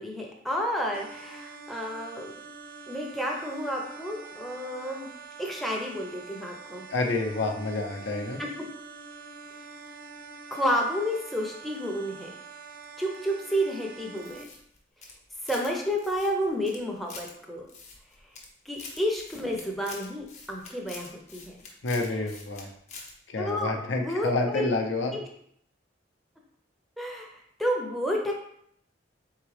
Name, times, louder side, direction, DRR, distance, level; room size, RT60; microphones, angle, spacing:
voice 1, 0.0-2.4 2.9-5.1 5.4-6.8 8.4-8.5 10.5-12.3 13.0-14.5 15.4-17.7 18.7-21.5 23.4-24.7 27.0-28.3, equal, ahead, -1 dB, 0.5 m, -31 dB
sound 1, 0.9-14.4, right 4 dB, 45° right, 0.4 m, -45 dB
voice 2, 6.9-8.4 21.8-22.7 23.3-25.2, left 2 dB, 70° left, 3 dB, 0.6 m, -28 dB
sound 2, 14.2-15.7 16.0-17.3 17.7-18.5 18.7-22.6 22.9-23.1, left 4 dB, 40° left, 0.8 m, -45 dB
3.9 x 3.6 x 3.2 m, 0.69 s
head